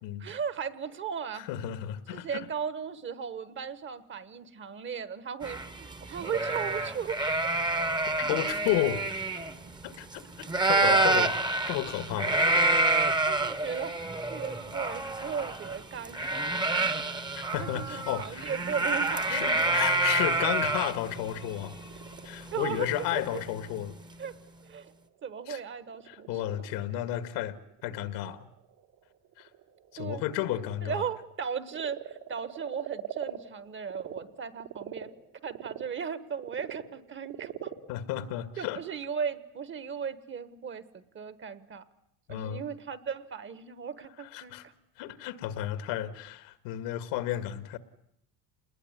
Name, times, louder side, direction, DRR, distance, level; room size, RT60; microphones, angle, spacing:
voice 1, 0.2-1.5 2.1-7.5 10.8-11.3 13.3-13.9 14.3-16.9 17.2-17.3 17.6-19.8 22.5-23.4 24.2-24.3 24.6-24.9 25.2-26.3 30.0-30.2 30.8-35.1 35.4-37.7 38.6-41.8 42.3-44.7, right 7 dB, 30° right, 15 dB, 1.2 m, -36 dB
voice 2, 1.4-2.5 8.2-9.2 9.8-10.2 10.6-11.3 11.7-12.4 17.3-18.5 19.3-21.8 22.2-23.9 25.5-25.6 26.1-28.5 29.4-29.5 29.9-31.1 37.9-38.8 42.3-42.6 44.2-44.7 45.0-47.8, left 13 dB, 80° left, 12 dB, 2.0 m, -32 dB
sound 1, 5.4-10.1 10.4-23.3, right 2 dB, 10° right, 1.0 m, -28 dB
Frog, 21.4-34.2 34.6-39.2, right 11 dB, 85° right, 3.5 m, -45 dB
28.0 x 20.5 x 9.6 m, 0.76 s
cardioid pair, 155°, 41 cm